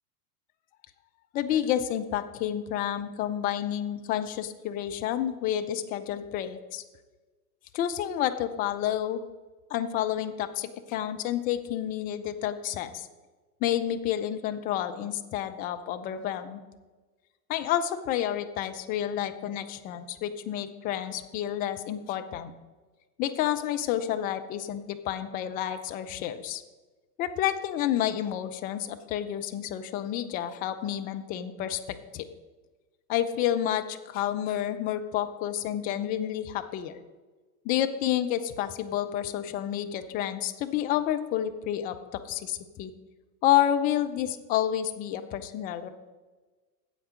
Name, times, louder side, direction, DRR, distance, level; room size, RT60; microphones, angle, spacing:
voice 1, 1.3-6.8 7.7-9.2 9.7-13.1 13.6-16.6 17.5-22.5 23.2-26.6 27.2-31.8 32.1-32.3 33.1-37.0 37.6-42.9 43.4-45.9, left 11 dB, 20° left, 8 dB, 0.4 m, -29 dB
9.0 x 7.8 x 6.4 m, 1.3 s
figure-of-eight pair, 90°, 48 cm